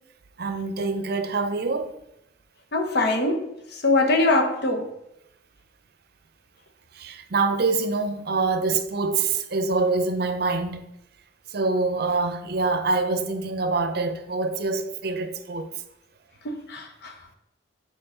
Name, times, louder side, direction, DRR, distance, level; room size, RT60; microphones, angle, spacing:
voice 1, 0.4-2.0 6.9-10.9 11.5-15.7, right 3 dB, 55° right, 0.6 m, -25 dB
voice 2, 2.7-3.4 3.8-4.9 16.4-17.1, left 2 dB, 55° left, 0.9 m, -22 dB
7.0 x 4.6 x 3.7 m
head